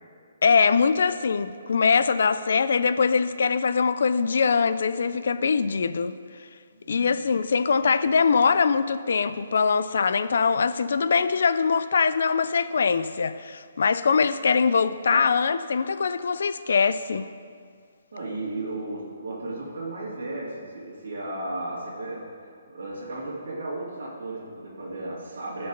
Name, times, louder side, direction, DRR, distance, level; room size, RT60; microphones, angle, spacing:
voice 1, 0.4-6.1 6.9-17.3, left 5 dB, 55° left, 0.4 m, -22 dB
voice 2, 6.7-7.2 18.1-22.3 22.7-25.7, right 2 dB, 60° right, 2.5 m, -34 dB
16.0 x 5.5 x 3.9 m
hypercardioid pair, 180°, 0 cm